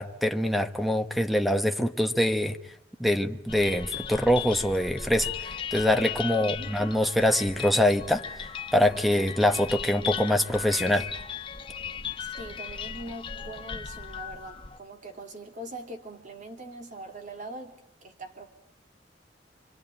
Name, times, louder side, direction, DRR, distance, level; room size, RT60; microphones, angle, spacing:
voice 1, 0.0-2.6 3.0-11.1, left 1 dB, ahead, 1.2 m, -24 dB
sound 1, 3.5-14.8, left 7 dB, 30° left, 1.4 m, -37 dB
voice 2, 6.2-6.8 12.2-17.7 18.0-18.5, right 2 dB, 45° right, 3.7 m, -42 dB
27.0 x 24.5 x 8.8 m
head